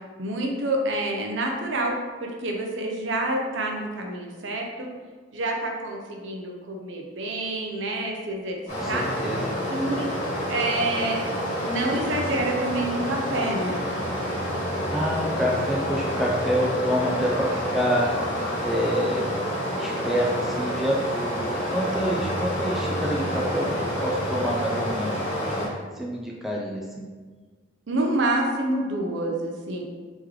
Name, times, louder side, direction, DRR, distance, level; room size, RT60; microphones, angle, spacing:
voice 1, 0.2-4.9 5.3-8.6 8.9-9.1 9.7-10.1 10.5-11.2 11.6-13.8 27.9-29.8, right 1 dB, 65° right, 1 dB, 0.6 m, -27 dB
Stream, 8.7-25.7, equal, 30° left, 1.4 m, -28 dB
voice 2, 8.7-9.4 14.9-18.1 18.6-19.3 19.8-25.7 26.0-27.0, equal, ahead, -3 dB, 0.3 m, -27 dB
3.1 x 3.1 x 3.7 m, 1.4 s
head